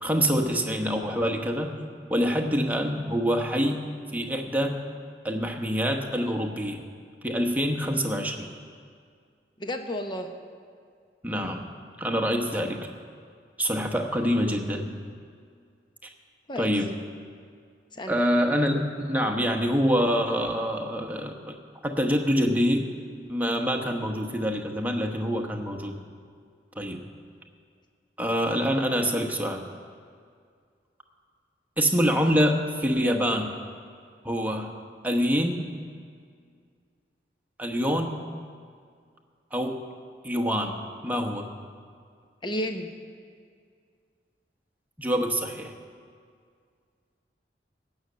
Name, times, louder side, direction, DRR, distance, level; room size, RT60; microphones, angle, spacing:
voice 1, 0.0-1.7 2.1-4.8 5.2-6.8 7.2-8.5 11.2-11.6 12.0-12.8 13.6-14.9 16.6-16.9 18.1-21.5 21.8-22.9 23.3-26.0 26.8-27.0 28.2-29.6 31.8-33.5 34.2-34.7 35.0-35.7 37.6-38.3 39.5-39.8 40.2-40.8 41.0-41.5 45.0-45.7, equal, 10° right, 2 dB, 1.0 m, -26 dB
voice 2, 9.6-10.3 16.5-16.7 17.9-18.2 42.4-42.9, left 1 dB, 25° left, 5 dB, 0.9 m, -32 dB
17.0 x 6.5 x 8.3 m, 2.1 s
head